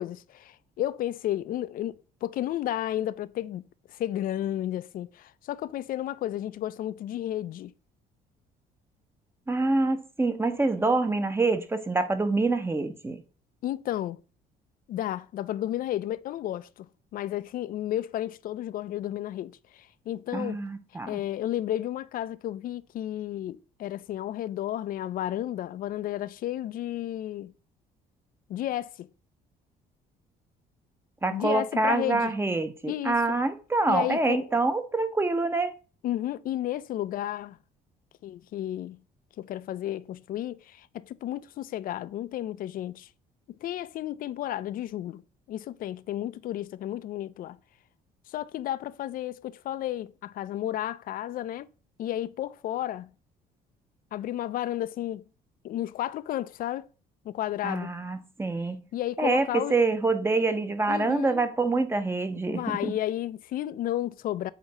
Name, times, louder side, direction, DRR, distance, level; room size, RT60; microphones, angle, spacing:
voice 1, 0.0-7.7 13.6-14.2 14.9-20.6 21.1-27.5 28.5-29.1 31.3-32.3 32.9-33.2 33.9-34.5 36.0-37.6 38.2-39.0 39.4-43.1 43.5-45.2 45.5-47.6 48.3-51.7 52.0-53.1 54.1-55.3 55.6-56.9 57.2-58.0 58.9-59.8 60.9-61.5 62.5-64.5, left 12 dB, 55° left, 0.5 m, -32 dB
voice 2, 9.5-13.2 20.3-21.2 31.2-35.7 57.6-58.8 59.2-62.9, right 3 dB, 15° right, 0.8 m, -26 dB
8.0 x 2.8 x 5.4 m
cardioid pair, 110°, 17 cm